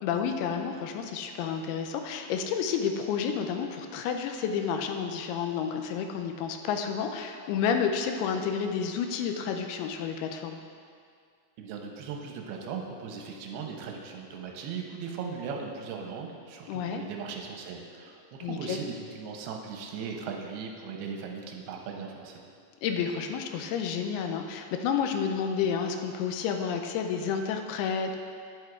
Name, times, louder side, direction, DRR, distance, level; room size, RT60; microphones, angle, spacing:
voice 1, 0.0-10.6 16.7-17.0 18.4-18.8 22.8-28.2, left 7 dB, 85° left, 5 dB, 2.5 m, -30 dB
voice 2, 11.6-22.4, right 5 dB, 90° right, 1 dB, 2.6 m, -38 dB
10.0 x 7.7 x 2.4 m, 2.2 s
omnidirectional pair, 4.6 m